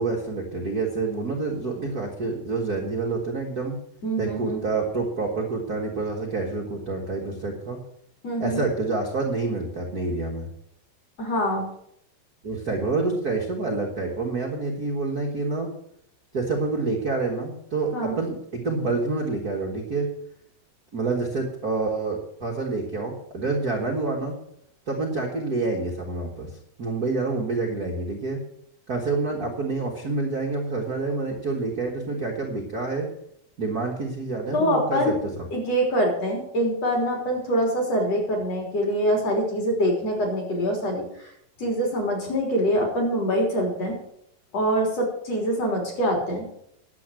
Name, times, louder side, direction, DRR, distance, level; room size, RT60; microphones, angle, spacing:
voice 1, 0.0-3.8 4.2-7.8 8.4-10.5 12.4-15.7 16.3-20.1 20.9-24.3 24.9-26.5 26.8-28.4 28.9-33.1 33.6-35.5, right 3 dB, 40° right, -1 dB, 1.5 m, -27 dB
voice 2, 4.0-4.6 8.2-8.6 11.2-11.7 17.9-18.2 34.5-35.2 35.5-41.3 41.6-44.0 44.5-46.5, equal, 45° left, 0 dB, 4.5 m, -24 dB
11.0 x 8.1 x 7.6 m, 0.72 s
omnidirectional pair, 4.2 m